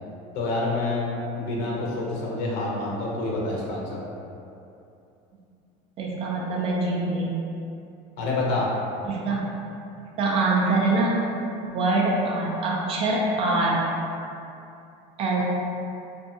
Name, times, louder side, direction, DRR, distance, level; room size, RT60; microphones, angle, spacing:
voice 1, 0.3-1.1 1.3-4.0 8.2-8.7, left 2 dB, 65° left, -4 dB, 0.7 m, -27 dB
voice 2, 6.0-7.4 9.0-9.5 10.2-11.2 11.7-13.8 15.2-15.4, right 2 dB, 35° right, -3 dB, 0.4 m, -24 dB
2.6 x 2.3 x 2.6 m, 2.7 s
cardioid pair, 150°, 17 cm